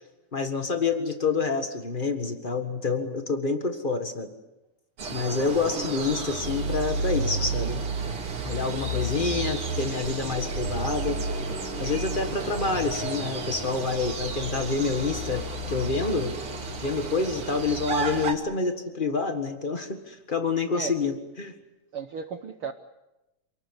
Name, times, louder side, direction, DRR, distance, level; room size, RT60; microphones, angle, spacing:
voice 1, 0.3-4.3 5.1-7.9 8.4-11.2 11.8-16.3 16.8-21.5, left 4 dB, 80° left, 6 dB, 0.4 m, -28 dB
sound 1, 5.0-18.3, right 3 dB, 45° right, 3.3 m, -31 dB
voice 2, 21.9-22.7, right 6 dB, 75° right, 8 dB, 1.2 m, -35 dB
28.0 x 19.5 x 8.1 m, 0.97 s
omnidirectional pair, 3.8 m